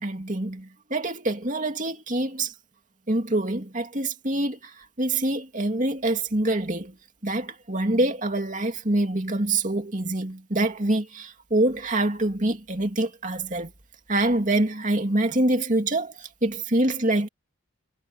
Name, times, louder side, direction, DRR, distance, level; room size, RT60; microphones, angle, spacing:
voice 1, 0.0-2.5 3.1-4.7 5.0-6.9 7.2-13.7 14.1-17.3, right 2 dB, 35° right, 2.7 m, -25 dB
head